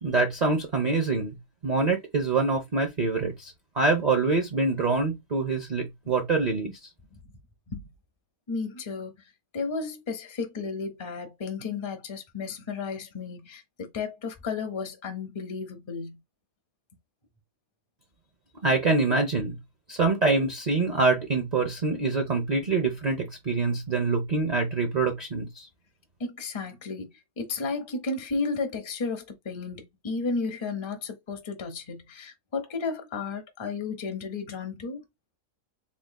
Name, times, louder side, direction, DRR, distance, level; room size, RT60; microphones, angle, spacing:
voice 1, 0.0-1.3 1.6-6.7 18.6-19.6 19.9-25.7, right 3 dB, 45° right, 0.5 m, -25 dB
voice 2, 8.5-9.1 9.5-16.2 26.2-27.1 27.4-35.0, left 4 dB, 25° left, 0.6 m, -33 dB
3.7 x 3.7 x 2.2 m
omnidirectional pair, 1.6 m